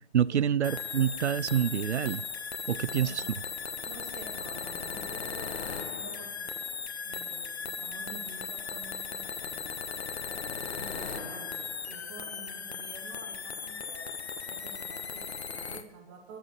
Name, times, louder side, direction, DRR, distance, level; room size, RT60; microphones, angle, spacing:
voice 1, 0.1-2.2 2.7-3.2, right 9 dB, 85° right, 20 dB, 0.5 m, -27 dB
sound 1, 0.6-15.8, left 6 dB, 75° left, 1.2 m, -37 dB
voice 2, 2.7-3.4 3.9-6.5 7.0-9.7 10.7-14.1 14.5-16.4, right 4 dB, 10° right, 4 dB, 0.9 m, -49 dB
11.0 x 10.5 x 6.0 m, 0.94 s
hypercardioid pair, 165°, 33 cm